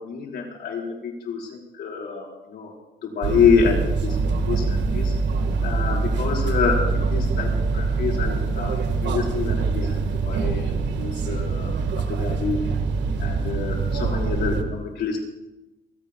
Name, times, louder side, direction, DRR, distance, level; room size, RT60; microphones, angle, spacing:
voice 1, 0.0-2.7 3.0-5.1 5.6-6.8 7.1-10.0 10.2-10.7 11.0-11.7 12.0-12.7 13.2-15.2, left 6 dB, 65° left, -1 dB, 4.7 m, -26 dB
sound 1, 3.2-14.6, right 4 dB, 75° right, 1.7 m, -24 dB
27.5 x 17.5 x 2.3 m, 1.0 s
cardioid pair, 125°, 19 cm